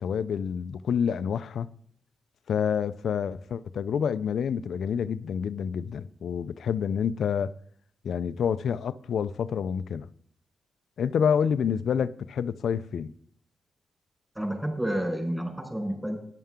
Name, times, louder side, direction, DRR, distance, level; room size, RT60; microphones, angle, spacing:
voice 1, 0.0-1.7 2.5-7.5 8.0-10.1 11.0-13.1, left 7 dB, 75° left, 0.5 m, -28 dB
voice 2, 14.3-16.2, right 1 dB, 10° right, 4.7 m, -30 dB
13.0 x 10.0 x 3.7 m
cardioid pair, 80°, 0 cm